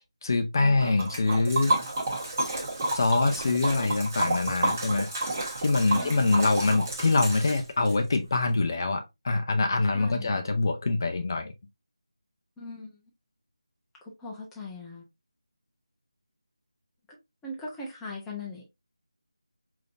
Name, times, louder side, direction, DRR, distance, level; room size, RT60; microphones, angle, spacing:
voice 1, 0.0-1.7 2.9-5.1 5.6-11.5, left 3 dB, 45° left, 0.6 m, -25 dB
Liquid, 0.8-8.0, right 2 dB, 25° right, 1.2 m, -30 dB
voice 2, 5.9-6.5 9.9-10.4 12.6-13.0 14.2-15.0 17.4-18.6, left 2 dB, 5° left, 0.6 m, -40 dB
5.1 x 2.8 x 2.5 m
figure-of-eight pair, 165°, 3 cm